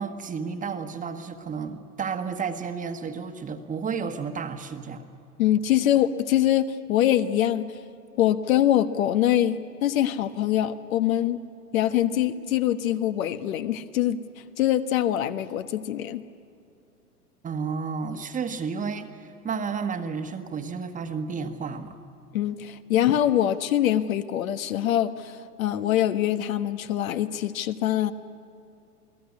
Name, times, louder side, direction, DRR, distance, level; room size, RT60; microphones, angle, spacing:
voice 1, 0.0-5.1 17.4-22.0, right 5 dB, 15° right, 7 dB, 1.4 m, -32 dB
voice 2, 5.4-7.7 8.2-11.4 11.7-14.2 14.6-16.2 22.3-28.1, left 11 dB, 60° left, 10 dB, 1.3 m, -24 dB
28.5 x 18.5 x 9.7 m, 2.5 s
hypercardioid pair, 115°, 47 cm